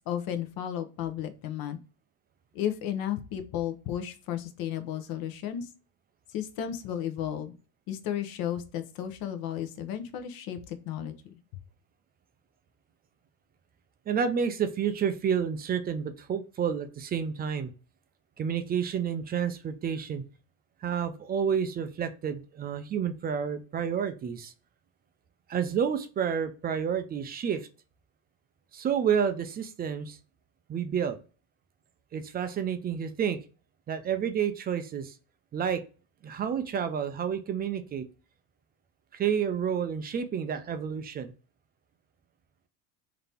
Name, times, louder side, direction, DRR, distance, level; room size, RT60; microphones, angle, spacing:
voice 1, 0.1-1.8 2.5-5.7 6.3-7.5 7.9-11.3, left 10 dB, 55° left, 8 dB, 0.8 m, -33 dB
voice 2, 14.1-17.7 18.4-20.2 20.8-24.5 25.5-27.7 28.7-30.2 30.7-31.2 32.1-33.4 33.9-35.1 35.5-35.8 36.2-38.1 39.1-41.3, right 7 dB, 25° right, 9 dB, 0.4 m, -30 dB
3.9 x 2.8 x 3.4 m, 0.35 s
supercardioid pair, 130°, 42 cm